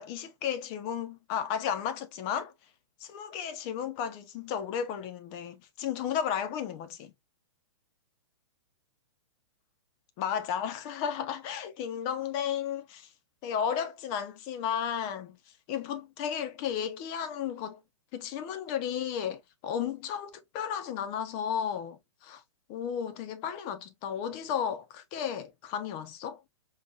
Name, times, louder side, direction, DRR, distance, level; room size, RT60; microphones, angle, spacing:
voice 1, 0.0-2.5 3.0-7.1 10.2-13.1 13.4-15.4 15.7-17.8 18.1-22.4 22.7-26.4, left 8 dB, 35° left, 0.8 m, -33 dB
5.6 x 2.5 x 2.5 m
hypercardioid pair, 125°, 16 cm